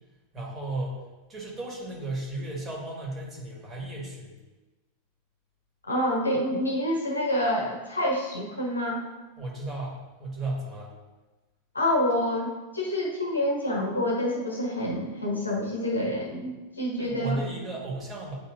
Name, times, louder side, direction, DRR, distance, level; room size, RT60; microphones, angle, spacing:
voice 1, 0.3-1.0 1.3-4.3 9.4-10.9 17.0-18.3, right 2 dB, 20° right, -2 dB, 1.8 m, -34 dB
voice 2, 5.8-9.0 11.7-17.4, left 1 dB, 80° left, -1 dB, 1.1 m, -27 dB
9.3 x 4.0 x 2.5 m, 1.2 s
figure-of-eight pair, 90°, 0 cm